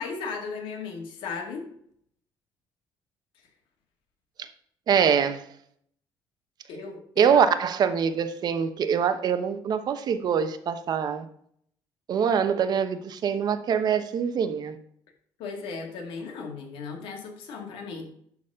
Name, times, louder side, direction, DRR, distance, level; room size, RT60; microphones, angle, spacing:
voice 1, 0.0-1.7 6.7-7.4 15.4-18.0, left 4 dB, 80° left, 2 dB, 2.2 m, -36 dB
voice 2, 4.9-5.4 7.2-11.3 12.1-14.8, right 7 dB, 50° right, 10 dB, 0.9 m, -24 dB
12.0 x 4.2 x 5.5 m, 0.67 s
cardioid pair, 115°, 9 cm